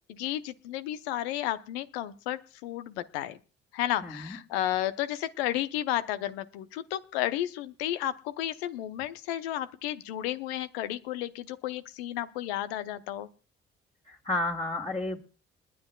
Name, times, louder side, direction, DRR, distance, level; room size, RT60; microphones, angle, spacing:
voice 1, 0.1-3.4 3.7-13.3, left 13 dB, 80° left, 0.8 m, -32 dB
voice 2, 4.0-4.4 14.1-15.2, left 2 dB, 20° left, 2.2 m, -31 dB
29.5 x 10.0 x 2.3 m
figure-of-eight pair, 40°, 31 cm